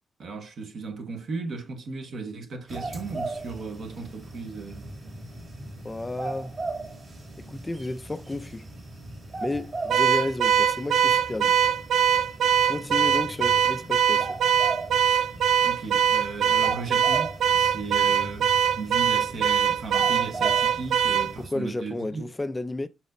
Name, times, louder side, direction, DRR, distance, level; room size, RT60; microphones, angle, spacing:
voice 1, 0.2-4.9 15.0-15.3 15.6-22.3, right 4 dB, 50° right, 1.2 m, -36 dB
sound 1, 2.7-21.5, right 2 dB, 35° right, 2.3 m, -38 dB
voice 2, 5.8-6.5 7.4-8.7 9.4-11.6 12.7-14.4 21.4-22.9, left 2 dB, 10° left, 0.4 m, -32 dB
Car / Alarm, 9.9-21.3, right 9 dB, 75° right, 0.5 m, -22 dB
7.2 x 5.8 x 2.6 m
wide cardioid pair, 175°, 0 cm